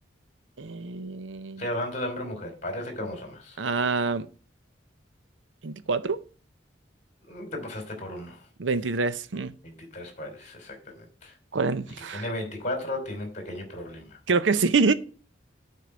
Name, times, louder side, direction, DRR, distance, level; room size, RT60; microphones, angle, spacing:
voice 1, 0.6-1.6 3.6-4.3 5.6-6.2 8.6-9.5 11.5-12.2 14.3-14.9, right 4 dB, 75° right, 0.6 m, -26 dB
voice 2, 1.6-3.6 7.2-8.5 9.6-11.4 12.1-14.2, left 1 dB, 40° left, 3.0 m, -35 dB
8.3 x 4.6 x 7.4 m
head